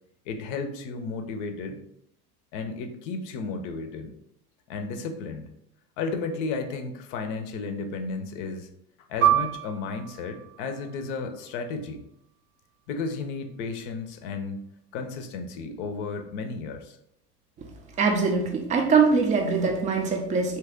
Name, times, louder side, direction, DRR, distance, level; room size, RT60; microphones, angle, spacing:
voice 1, 0.3-1.8 2.5-4.1 4.7-5.5 6.0-8.7 9.1-12.0 12.9-14.7 14.9-17.0, left 4 dB, 50° left, 6 dB, 0.6 m, -33 dB
Piano, 9.2-14.2 14.6-14.7 15.5-15.9, right 11 dB, 65° right, 0.8 m, -29 dB
voice 2, 18.0-20.6, right 5 dB, 15° right, 3 dB, 0.4 m, -22 dB
2.8 x 2.8 x 3.5 m, 0.77 s
figure-of-eight pair, 70°, 48 cm